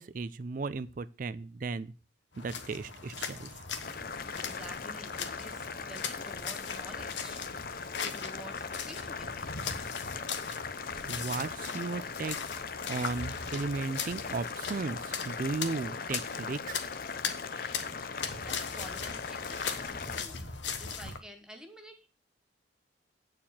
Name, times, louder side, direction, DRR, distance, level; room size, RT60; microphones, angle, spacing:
voice 1, 0.0-1.9 2.4-3.6 11.1-12.4 12.9-16.8, right 3 dB, 45° right, 16 dB, 0.4 m, -35 dB
sound 1, 2.3-21.2, left 6 dB, 75° left, 1.2 m, -40 dB
Boiling, 3.8-20.2, left 5 dB, 50° left, 0.6 m, -39 dB
voice 2, 4.4-7.5 8.0-9.6 18.4-22.1, equal, 5° right, 6 dB, 1.0 m, -50 dB
8.8 x 4.8 x 7.2 m, 0.35 s
head